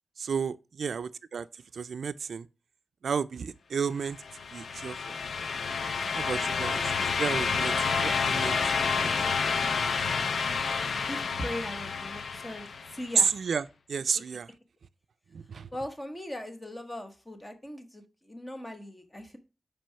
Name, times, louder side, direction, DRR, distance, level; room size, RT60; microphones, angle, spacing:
voice 1, 0.2-1.5 1.7-2.5 3.0-4.2 4.5-5.2 6.1-6.8 7.2-9.3 13.2-14.5 15.3-15.7, right 6 dB, 80° right, 0.3 m, -32 dB
sound 1, 4.2-13.1, left 5 dB, 70° left, 0.5 m, -29 dB
voice 2, 11.1-13.4 15.7-19.4, left 1 dB, 15° left, 1.1 m, -39 dB
6.1 x 4.7 x 5.6 m
wide cardioid pair, 155°, 0 cm